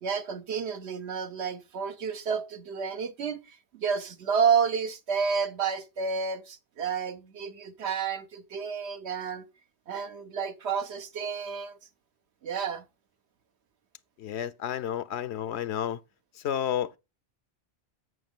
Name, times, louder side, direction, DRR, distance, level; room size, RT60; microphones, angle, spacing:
voice 1, 0.0-9.4 9.9-11.8 12.4-12.8, right 6 dB, 85° right, 1.2 m, -30 dB
voice 2, 14.2-16.0 16.4-17.0, left 10 dB, 85° left, 0.9 m, -31 dB
8.1 x 7.1 x 3.7 m
omnidirectional pair, 1.1 m